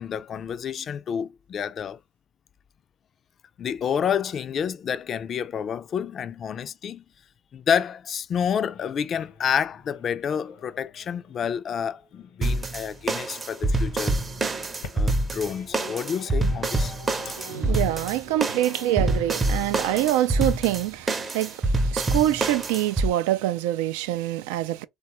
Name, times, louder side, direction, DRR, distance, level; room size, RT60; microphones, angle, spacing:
voice 1, 0.0-2.0 3.6-7.0 7.5-14.2 14.9-16.9 17.3-17.4, left 8 dB, 45° left, 0.3 m, -29 dB
sound 1, 8.5-20.1, left 4 dB, 75° left, 0.8 m, -47 dB
sound 2, 12.4-23.1, right 2 dB, 30° right, 0.7 m, -26 dB
voice 2, 17.2-24.9, right 14 dB, 80° right, 0.3 m, -25 dB
3.2 x 2.2 x 2.9 m
hypercardioid pair, 75°, 0 cm